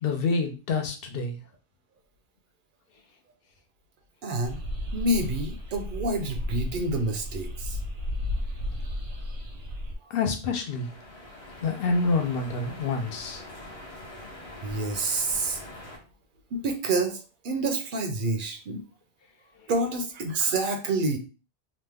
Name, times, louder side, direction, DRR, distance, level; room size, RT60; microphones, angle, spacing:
voice 1, 0.0-1.4 10.1-10.9 11.5-13.4, left 4 dB, 70° left, 5 dB, 0.8 m, -27 dB
voice 2, 4.2-4.6 4.9-7.8 14.6-15.6 16.5-18.8 19.7-21.2, right 2 dB, 60° right, 5 dB, 0.6 m, -28 dB
sound 1, 4.4-9.9, left 1 dB, 90° right, 1.0 m, -33 dB
sound 2, 10.7-16.0, left 1 dB, 35° left, 1.0 m, -43 dB
3.0 x 2.0 x 3.4 m, 0.34 s
omnidirectional pair, 1.0 m